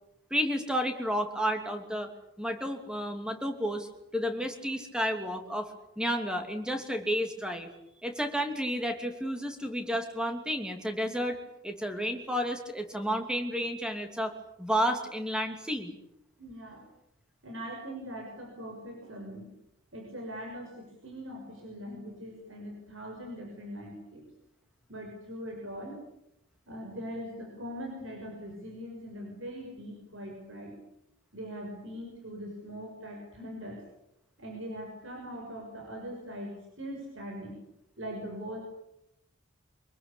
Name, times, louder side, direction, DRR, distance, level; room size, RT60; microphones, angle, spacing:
voice 1, 0.3-2.1 2.4-7.7 8.0-15.9, equal, 5° right, 5 dB, 2.9 m, -31 dB
voice 2, 16.4-16.9 17.4-19.5 19.9-24.2 24.9-26.0 26.7-30.7 31.3-33.8 34.4-37.6 38.0-38.6, equal, 70° right, 1 dB, 6.6 m, -41 dB
25.0 x 22.5 x 8.7 m, 0.81 s
head